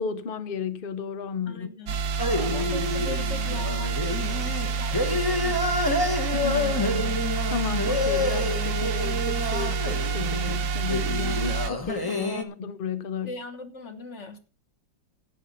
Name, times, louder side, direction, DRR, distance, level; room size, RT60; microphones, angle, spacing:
voice 1, 0.0-1.7 2.4-2.7 6.3-13.3, left 5 dB, 65° left, 0.5 m, -34 dB
voice 2, 1.5-2.0 2.3-5.9 13.2-14.4, left 3 dB, 40° left, 1.4 m, -40 dB
sound 1, 1.9-11.7, right 5 dB, 65° right, 1.2 m, -28 dB
sound 2, 2.2-12.4, left 2 dB, 20° left, 0.7 m, -28 dB
11.5 x 8.6 x 5.3 m
omnidirectional pair, 2.0 m